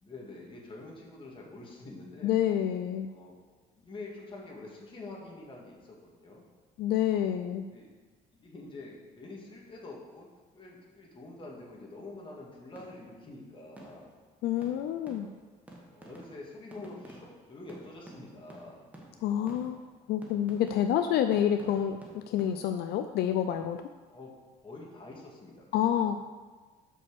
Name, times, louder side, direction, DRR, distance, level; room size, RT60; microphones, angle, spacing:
voice 1, 0.0-2.4 3.1-3.4 3.7-6.4 7.7-7.9 8.4-10.3 10.5-14.1 15.0-15.3 15.9-18.8 24.1-24.4 24.6-26.2, left 2 dB, 30° left, -3 dB, 2.0 m, -46 dB
voice 2, 2.2-3.1 6.8-7.7 14.4-15.3 19.2-19.8 20.1-23.8 25.7-26.2, left 10 dB, 75° left, 8 dB, 0.4 m, -28 dB
sound 1, 12.8-13.2 13.8-14.3 14.6-22.5, right 1 dB, 10° right, 1.3 m, -52 dB
5.5 x 5.2 x 6.6 m, 1.4 s
cardioid pair, 110°, 17 cm